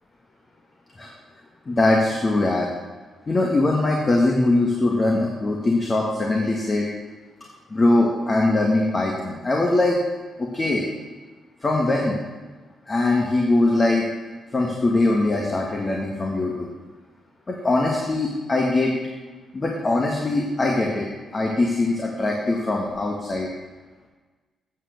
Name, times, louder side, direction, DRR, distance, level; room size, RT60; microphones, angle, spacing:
voice 1, 1.7-2.7 3.3-6.8 7.7-10.0 10.4-10.9 11.6-12.2 12.9-14.0 14.5-16.7 17.5-18.9 19.5-21.1 21.3-23.5, left 2 dB, 35° left, -1 dB, 1.7 m, -21 dB
8.5 x 7.4 x 6.6 m, 1.3 s
hypercardioid pair, 45°, 0 cm